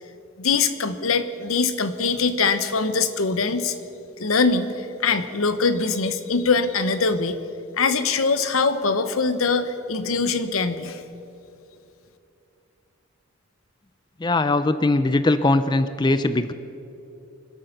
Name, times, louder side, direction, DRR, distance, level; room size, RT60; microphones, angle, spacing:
voice 1, 0.4-3.8 4.2-7.4 7.8-11.0, left 4 dB, 85° left, 10 dB, 1.0 m, -22 dB
voice 2, 14.2-16.5, left 2 dB, 20° left, 12 dB, 0.4 m, -20 dB
24.5 x 8.6 x 6.6 m, 2.8 s
head